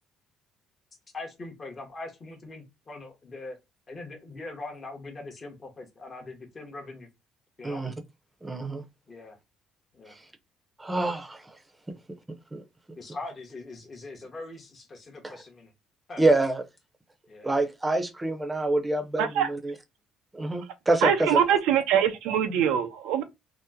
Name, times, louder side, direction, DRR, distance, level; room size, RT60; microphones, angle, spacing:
voice 1, 1.1-3.6 3.9-7.1 7.6-7.8 9.1-9.4 9.9-10.1 13.0-15.7 16.1-16.2 17.3-17.5, left 2 dB, 30° left, 0.9 m, -41 dB
voice 2, 8.4-8.8 10.8-11.4 12.5-12.6 15.2-15.3 16.2-16.6 17.4-19.7 20.3-21.4, right 2 dB, 15° right, 0.7 m, -26 dB
voice 3, 19.2-19.5 21.0-23.2, right 8 dB, 90° right, 0.5 m, -23 dB
2.9 x 2.1 x 3.4 m
cardioid pair, 125°, 0 cm